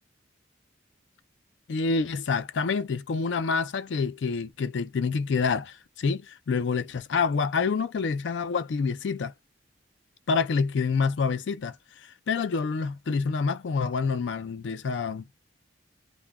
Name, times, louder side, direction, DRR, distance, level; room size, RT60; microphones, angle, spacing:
voice 1, 1.7-9.3 10.3-11.8 12.0-15.4, left 5 dB, 70° left, 0.4 m, -27 dB
2.2 x 2.2 x 3.4 m
head